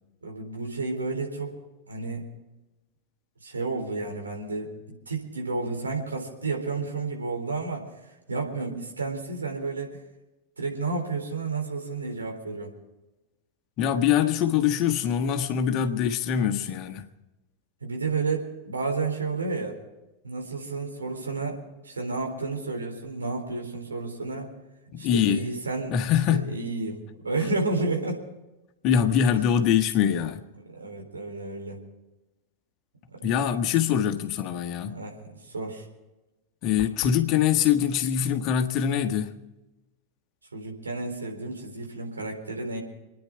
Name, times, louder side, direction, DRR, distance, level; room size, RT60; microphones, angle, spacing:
voice 1, 0.2-1.6 1.9-2.3 3.4-7.9 8.3-10.0 10.6-12.7 17.8-19.8 20.2-24.5 25.0-26.0 26.3-28.3 30.7-31.8 33.1-33.2 34.9-35.9 40.5-42.8, right 3 dB, 75° right, 3.9 m, -31 dB
voice 2, 13.8-17.1 24.9-25.5 25.9-26.6 28.8-30.4 33.2-35.0 36.6-39.3, left 9 dB, 40° left, 1.5 m, -24 dB
sound 1, 36.8-37.3, left 8 dB, 55° left, 1.1 m, -40 dB
27.5 x 10.0 x 4.7 m
figure-of-eight pair, 90°, 0 cm